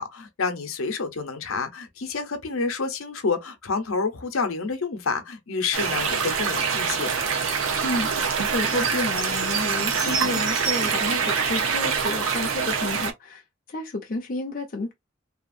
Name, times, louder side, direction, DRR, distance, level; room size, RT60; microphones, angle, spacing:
voice 1, 0.0-7.1, left 4 dB, 80° left, 0.7 m, -28 dB
sound 1, 5.7-13.1, right 6 dB, 80° right, 0.7 m, -25 dB
voice 2, 7.8-13.4 13.7-14.9, left 2 dB, 40° left, 0.5 m, -31 dB
2.8 x 2.4 x 2.5 m
head